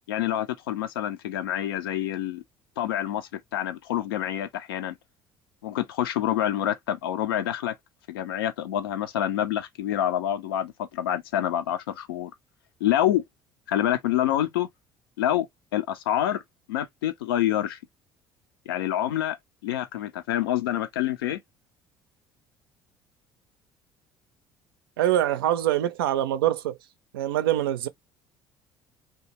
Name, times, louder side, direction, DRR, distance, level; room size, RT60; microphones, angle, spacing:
voice 1, 0.1-2.4 2.8-4.9 5.6-7.7 8.1-12.3 12.8-13.2 13.7-14.7 15.2-15.5 15.7-16.4 16.7-17.8 18.7-19.4 19.6-21.4, left 12 dB, 75° left, 0.5 m, -27 dB
voice 2, 25.0-26.8 27.1-27.9, right 12 dB, 75° right, 0.4 m, -24 dB
2.7 x 2.3 x 2.8 m
figure-of-eight pair, 55°, 12 cm